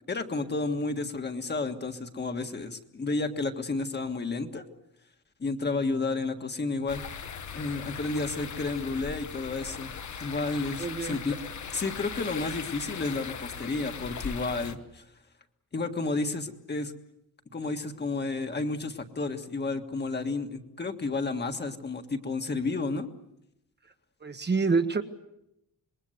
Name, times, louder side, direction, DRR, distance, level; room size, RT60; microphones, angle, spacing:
voice 1, 0.1-4.7 5.4-7.0 7.5-9.9 10.2-11.4 11.7-15.0 15.7-16.9 17.5-23.1, left 3 dB, 30° left, 5 dB, 1.7 m, -31 dB
sound 1, 6.9-14.8, left 6 dB, 55° left, 1.4 m, -39 dB
voice 2, 10.8-11.2 24.2-25.0, right 4 dB, 30° right, 6 dB, 1.2 m, -27 dB
27.0 x 21.5 x 8.0 m, 0.82 s
wide cardioid pair, 160°, 35 cm